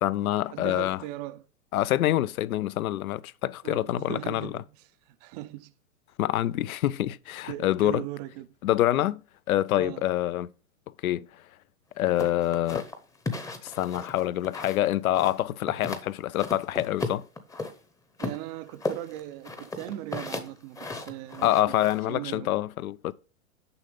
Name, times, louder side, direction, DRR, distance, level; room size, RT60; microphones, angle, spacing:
voice 1, 0.0-1.0 1.7-4.5 6.2-8.0 8.6-9.2 9.5-10.5 11.0-11.3 12.0-12.8 13.6-17.2 21.4-23.1, left 14 dB, 80° left, 0.6 m, -26 dB
voice 2, 0.5-1.4 3.6-4.6 5.1-5.7 7.5-8.5 9.8-10.0 18.2-21.7 22.1-22.5, right 15 dB, 30° right, 0.4 m, -38 dB
sound 1, 12.2-14.9 15.1-16.1 16.4-17.7 18.2-22.0, left 3 dB, 10° left, 0.7 m, -35 dB
7.0 x 5.6 x 5.1 m
hypercardioid pair, 125°, 42 cm